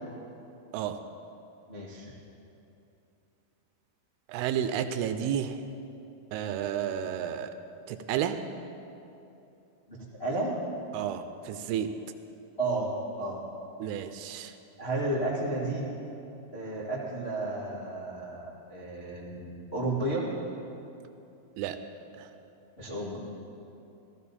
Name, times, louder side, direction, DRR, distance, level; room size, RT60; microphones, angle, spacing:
voice 1, 1.7-2.1 9.9-10.6 12.6-12.9 13.2-13.4 14.8-15.9 16.5-20.3 22.8-23.2, right 2 dB, 65° left, -8 dB, 0.6 m, -32 dB
voice 2, 4.3-5.5 6.3-7.5 7.9-8.4 10.9-11.2 11.5-11.9 13.8-14.5 21.6-21.8, right 9 dB, 85° right, 9 dB, 2.5 m, -31 dB
15.0 x 14.5 x 4.2 m, 2.8 s
omnidirectional pair, 4.7 m